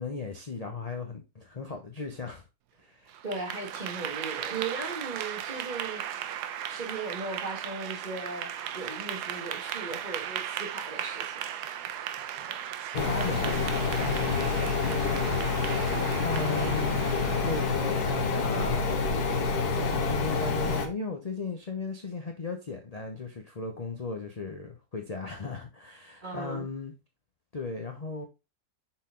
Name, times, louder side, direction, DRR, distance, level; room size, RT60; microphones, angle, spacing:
voice 1, 0.0-2.5 2.8-3.1 12.4-14.5 16.2-17.1 17.4-19.1 19.7-26.9 27.5-28.3, left 3 dB, 35° left, 0.6 m, -36 dB
Clapping / Applause, 3.1-18.4, right 10 dB, 80° right, 1.2 m, -37 dB
voice 2, 3.2-6.3 6.7-11.5 26.2-26.7, right 3 dB, 30° right, 1.8 m, -37 dB
sound 1, 12.9-20.9, left 4 dB, 70° left, 1.6 m, -27 dB
6.2 x 4.3 x 3.7 m
omnidirectional pair, 1.7 m